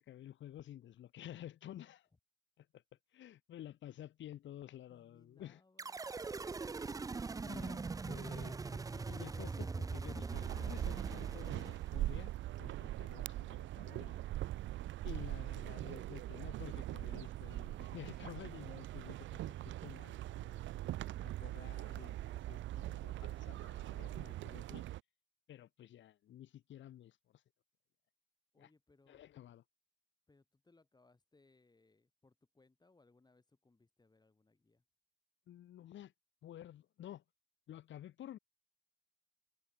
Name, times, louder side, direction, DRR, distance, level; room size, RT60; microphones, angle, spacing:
voice 1, 0.0-2.1 2.6-2.8 3.1-5.6 7.5-14.1 15.0-24.8 25.5-27.4 28.6-28.7 29.1-29.6 35.5-36.1 36.4-37.2 37.7-38.4, left 12 dB, 70° left, 1.5 m, -52 dB
voice 2, 4.9-6.7 14.1-14.4 22.4-22.8 28.5-29.2 30.3-34.8, left 3 dB, 20° left, 7.2 m, -70 dB
sound 1, 5.8-12.2, right 4 dB, 20° right, 0.4 m, -42 dB
sound 2, 10.3-25.0, right 15 dB, 70° right, 0.5 m, -42 dB
cardioid pair, 90°, 20 cm